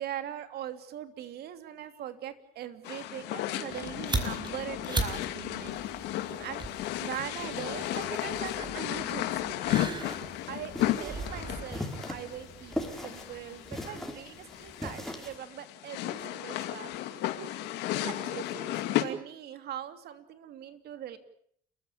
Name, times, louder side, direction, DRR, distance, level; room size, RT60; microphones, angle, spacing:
voice 1, 0.0-5.8 6.4-6.6 7.0-9.6 10.5-10.7 11.0-16.9 18.0-18.7 19.0-21.2, right 11 dB, 70° right, 9 dB, 3.0 m, -41 dB
sound 1, 2.8-19.0, left 13 dB, 90° left, 2.3 m, -34 dB
sound 2, 3.7-12.9, right 3 dB, 25° right, 5.1 m, -39 dB
sound 3, 9.9-15.4, left 1 dB, ahead, 5.0 m, -40 dB
30.0 x 15.0 x 8.7 m, 0.67 s
cardioid pair, 110°, 17 cm